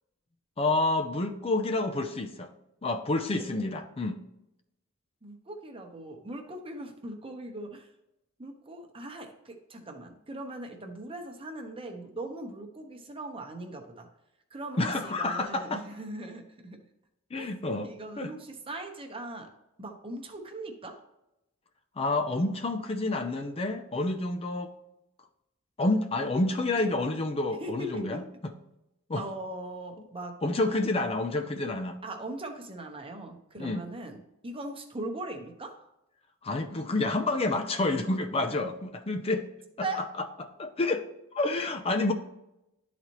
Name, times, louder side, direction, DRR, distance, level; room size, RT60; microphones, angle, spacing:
voice 1, 0.6-2.5 2.8-4.2 14.8-15.8 17.3-17.9 18.2-18.3 22.0-24.7 25.8-28.5 29.1-29.3 30.4-32.0 33.6-33.8 36.4-39.5 39.8-39.9 40.6-41.1 41.3-42.1, left 2 dB, 30° left, 6 dB, 0.5 m, -29 dB
voice 2, 5.2-7.9 8.4-14.1 14.5-16.8 17.4-17.5 17.8-19.5 19.8-21.0 27.6-28.2 29.2-30.4 32.0-35.8 39.8-40.1, right 2 dB, 25° right, 3 dB, 1.0 m, -40 dB
11.5 x 4.1 x 3.0 m, 0.88 s
head